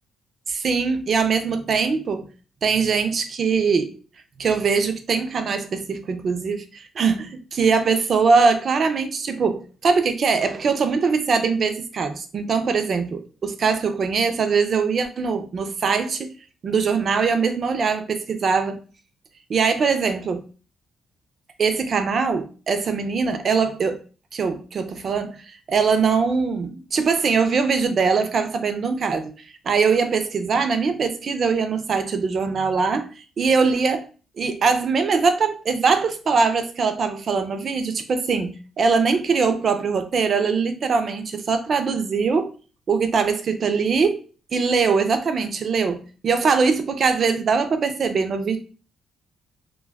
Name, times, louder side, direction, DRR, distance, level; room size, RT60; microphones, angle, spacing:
voice 1, 0.5-2.2 2.6-3.9 4.4-16.3 16.6-18.8 19.5-20.4 21.6-24.0 24.3-29.3 29.6-34.1 34.4-42.5 42.9-44.2 44.5-48.6, right 5 dB, 50° right, 0.5 m, -22 dB
2.2 x 2.2 x 3.4 m
cardioid pair, 90°, 0 cm